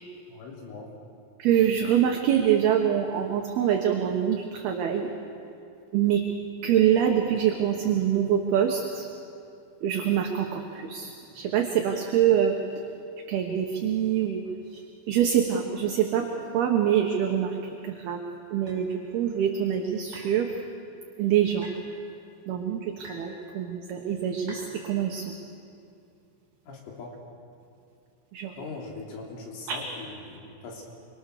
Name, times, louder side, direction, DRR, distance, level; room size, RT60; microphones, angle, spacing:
voice 1, 0.3-0.9 26.7-27.2 28.5-30.8, left 3 dB, 75° left, -1 dB, 5.6 m, -41 dB
voice 2, 1.4-5.1 5.9-6.2 6.6-9.1 9.8-12.6 13.3-14.4 14.7-14.8 15.1-16.3 16.5-17.6 17.8-18.2 18.5-20.5 21.2-21.7 22.5-25.3 28.3-28.5 29.7-29.8, right 9 dB, 70° right, 2 dB, 2.7 m, -25 dB
sound 1, 18.7-18.8 20.1-20.4 21.6-21.8 23.0-23.3 24.5-24.7, right 1 dB, 25° right, 6.7 m, -45 dB
26.5 x 24.0 x 6.8 m, 2.5 s
omnidirectional pair, 5.7 m